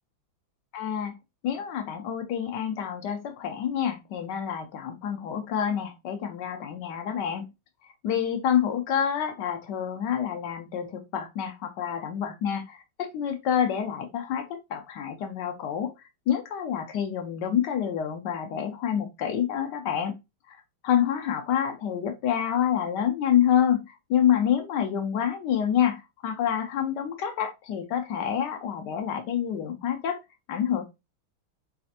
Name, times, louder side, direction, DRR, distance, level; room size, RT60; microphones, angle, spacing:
voice 1, 0.7-1.2 1.4-7.4 8.0-15.9 16.3-20.2 20.8-23.8 24.1-30.2 30.5-30.8, left 9 dB, 75° left, 1.0 m, -27 dB
4.1 x 2.7 x 2.4 m
omnidirectional pair, 2.3 m